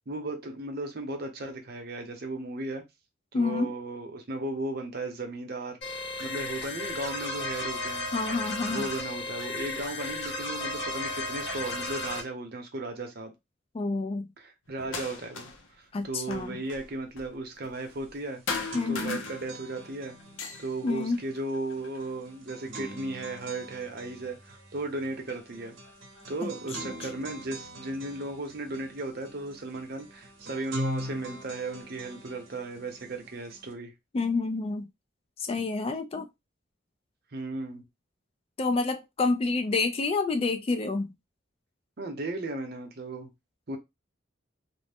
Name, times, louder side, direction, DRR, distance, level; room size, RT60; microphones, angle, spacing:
voice 1, 0.1-2.8 3.3-5.8 6.2-8.1 8.7-13.3 14.4-15.5 15.8-18.4 18.9-20.2 20.6-25.8 26.3-33.9 37.3-37.8 42.0-43.3 43.7-43.8, right 2 dB, 55° right, 0.7 m, -35 dB
voice 2, 3.3-3.7 8.1-8.9 13.7-14.3 15.9-16.6 18.7-19.2 20.8-21.2 26.4-26.5 26.8-26.9 34.1-34.9 35.4-36.3 38.6-41.1, left 3 dB, 30° left, 0.3 m, -28 dB
sound 1, 5.8-12.2, left 2 dB, 65° left, 1.2 m, -34 dB
sound 2, 14.8-15.7 16.0-18.2 18.5-19.9 20.2-22.1 22.7-23.6 24.6-24.7 25.3-26.3, left 4 dB, 90° left, 0.6 m, -39 dB
sound 3, 17.8-17.9 18.2-33.7, equal, 85° right, 0.8 m, -43 dB
2.5 x 2.1 x 3.4 m
head